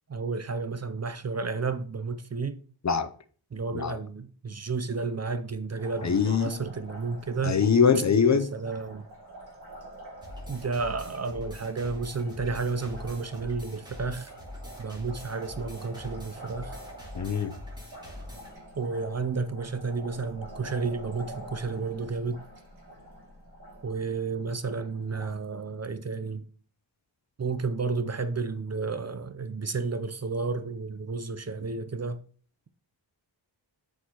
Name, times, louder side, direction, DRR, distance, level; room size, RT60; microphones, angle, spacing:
voice 1, 0.1-2.6 3.5-7.6 8.3-9.0 10.5-14.3 14.8-16.7 18.8-22.4 23.8-26.4 27.4-32.2, right 4 dB, 35° right, 0.5 m, -32 dB
Liquid, 5.8-25.3, right 1 dB, 55° right, 2.7 m, -47 dB
voice 2, 6.0-6.6 7.4-8.5 17.1-17.5, left 6 dB, 40° left, 0.6 m, -23 dB
sound 1, 10.2-18.6, left 1 dB, 10° right, 2.9 m, -43 dB
7.8 x 4.5 x 2.9 m
cardioid pair, 60°, 46 cm